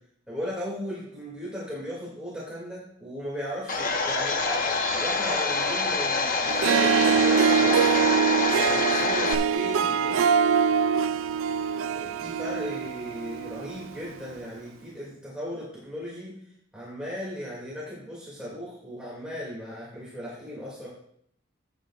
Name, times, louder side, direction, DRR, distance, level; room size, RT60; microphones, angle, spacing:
voice 1, 0.3-8.1 8.6-10.2 11.7-16.3 16.7-20.9, equal, 5° right, -6 dB, 2.5 m, -37 dB
Domestic sounds home sounds, 3.7-9.3, left 3 dB, 45° left, 0.9 m, -26 dB
Harp, 6.5-13.9, right 7 dB, 75° right, 0.3 m, -24 dB
14.5 x 9.0 x 2.5 m, 0.68 s
head